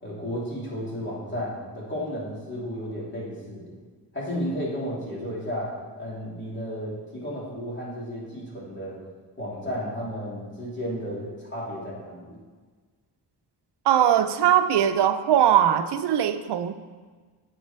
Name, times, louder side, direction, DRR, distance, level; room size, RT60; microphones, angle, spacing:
voice 1, 0.0-3.8 4.1-9.0 9.4-12.4, equal, 25° left, -5 dB, 3.2 m, -33 dB
voice 2, 13.9-16.7, right 10 dB, 80° right, 9 dB, 0.6 m, -20 dB
10.0 x 8.3 x 4.4 m, 1.5 s
wide cardioid pair, 150°, 41 cm